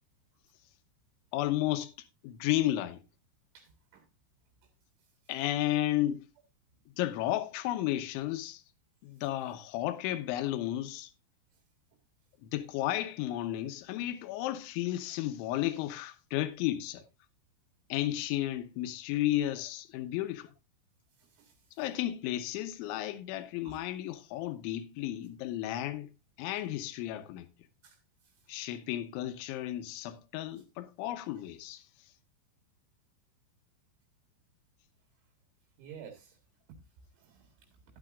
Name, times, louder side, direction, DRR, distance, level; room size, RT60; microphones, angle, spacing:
voice 1, 1.3-1.9 2.2-3.0 5.3-6.2 7.0-8.6 9.0-11.1 12.4-17.0 17.9-20.5 21.8-26.1 26.4-27.5 28.5-31.9, left 14 dB, 80° left, 3.1 m, -33 dB
voice 2, 3.5-4.0 21.2-21.5 23.7-23.8 27.8-28.0 35.8-36.4 37.2-37.5, right 7 dB, 70° right, 3.8 m, -51 dB
12.5 x 11.0 x 2.4 m
omnidirectional pair, 5.7 m